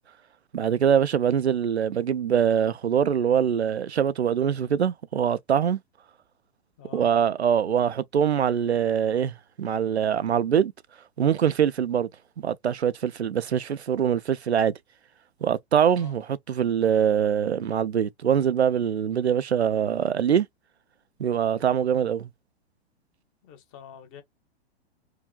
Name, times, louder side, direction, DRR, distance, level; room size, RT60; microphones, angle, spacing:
voice 1, 0.5-5.8 6.9-10.7 11.2-12.1 12.4-14.8 15.4-20.5 21.2-22.3, right 8 dB, 90° right, 0.5 m, -23 dB
voice 2, 6.8-7.1 15.9-16.1 23.4-24.2, left 8 dB, 35° left, 1.4 m, -46 dB
4.7 x 2.3 x 2.2 m
figure-of-eight pair, 105°, 32 cm